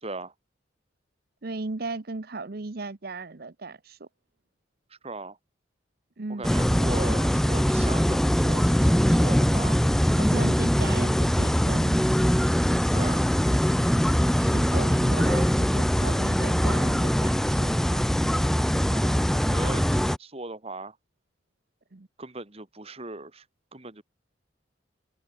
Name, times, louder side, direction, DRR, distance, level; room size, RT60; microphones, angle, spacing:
voice 1, 0.0-0.3 5.0-5.4 6.3-9.8 12.9-13.2 14.8-14.9 18.9-21.0 22.2-23.4 23.7-24.0, right 2 dB, 30° right, 2.3 m, -38 dB
voice 2, 1.4-4.1 6.2-6.4 10.2-12.4 14.4-18.0 21.9-22.1, right 3 dB, 55° right, 0.9 m, -37 dB
sound 1, 6.4-20.2, equal, ahead, 0.4 m, -22 dB
head